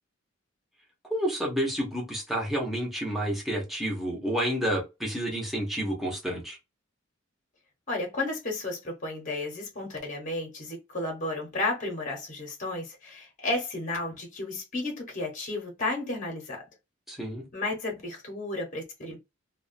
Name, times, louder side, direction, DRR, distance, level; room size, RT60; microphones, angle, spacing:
voice 1, 1.1-6.6 17.1-17.4, equal, ahead, 0.7 m, -30 dB
voice 2, 7.9-16.6 17.5-19.2, left 2 dB, 40° left, 0.8 m, -33 dB
2.3 x 2.2 x 2.5 m
head